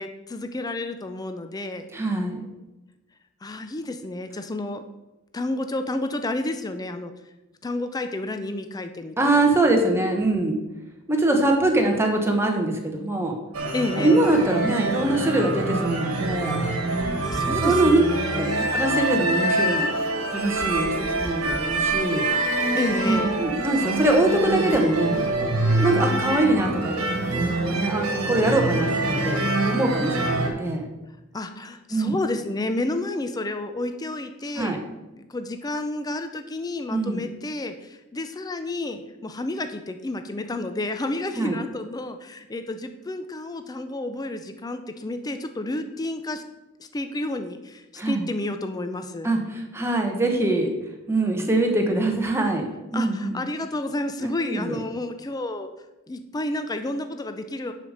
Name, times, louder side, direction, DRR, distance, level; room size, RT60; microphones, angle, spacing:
voice 1, 0.0-1.9 3.4-4.8 5.3-7.1 7.6-9.3 13.7-14.2 16.9-18.6 22.7-23.3 31.3-34.8 35.2-46.4 46.8-49.3 52.9-55.7 56.1-57.7, left 2 dB, 20° left, 8 dB, 0.4 m, -30 dB
voice 2, 1.9-2.5 9.2-10.6 11.1-13.3 14.0-16.6 17.5-18.0 18.3-19.8 20.3-22.2 23.0-25.2 25.8-26.9 27.6-30.8 31.9-32.1 34.6-34.8 36.9-37.3 41.4-41.6 48.0-48.3 49.2-50.7 51.1-52.6 52.9-53.4 54.2-54.8, right 2 dB, 10° right, 2 dB, 1.1 m, -23 dB
sound 1, 13.5-30.5, right 2 dB, 75° right, 1.4 m, -25 dB
6.9 x 5.1 x 6.4 m, 1.0 s
head